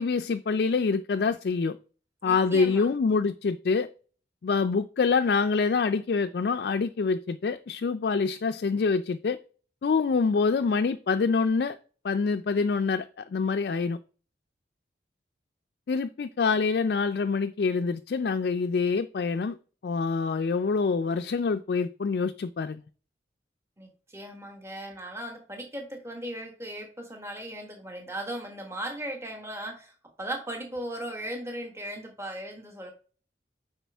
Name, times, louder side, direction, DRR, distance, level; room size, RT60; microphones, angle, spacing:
voice 1, 0.0-1.8 2.2-3.9 4.4-9.4 9.8-11.8 12.0-14.0 15.9-19.6 19.8-22.8, left 4 dB, 60° left, 0.4 m, -26 dB
voice 2, 2.2-2.9 23.8-32.9, right 1 dB, 15° right, 1.3 m, -37 dB
8.4 x 5.0 x 3.4 m
head